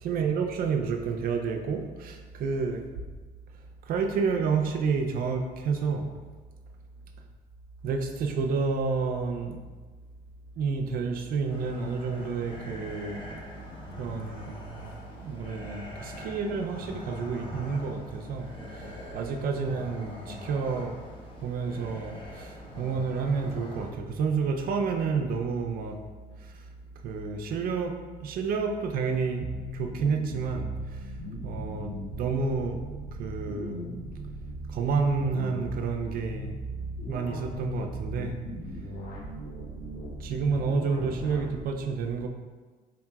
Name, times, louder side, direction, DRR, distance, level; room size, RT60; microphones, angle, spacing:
voice 1, 0.0-2.8 3.9-6.1 7.8-9.6 10.6-13.3 14.0-14.6 15.1-21.0 21.4-26.0 26.4-26.5 27.0-31.0 31.4-33.8 34.7-36.6 37.0-38.4 40.2-42.3, right 5 dB, 60° right, 4 dB, 0.4 m, -30 dB
sound 1, 11.5-23.9, left 1 dB, 30° left, 0.7 m, -43 dB
sound 2, 29.3-41.6, right 1 dB, 65° left, 0.7 m, -38 dB
4.0 x 2.8 x 2.3 m, 1.4 s
cardioid pair, 110°, 17 cm